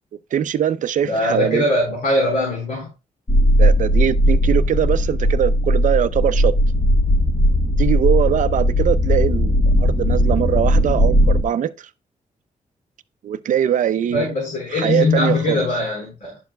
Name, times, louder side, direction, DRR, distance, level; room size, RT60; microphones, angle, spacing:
voice 1, 0.3-1.6 3.6-6.5 7.8-11.7 13.2-14.3 14.7-15.6, right 10 dB, 65° right, 0.5 m, -21 dB
voice 2, 1.0-2.9 14.1-16.4, left 2 dB, 75° left, 4.1 m, -21 dB
sound 1, 3.3-11.4, equal, 20° left, 1.0 m, -17 dB
11.5 x 6.9 x 2.3 m
wide cardioid pair, 155°, 14 cm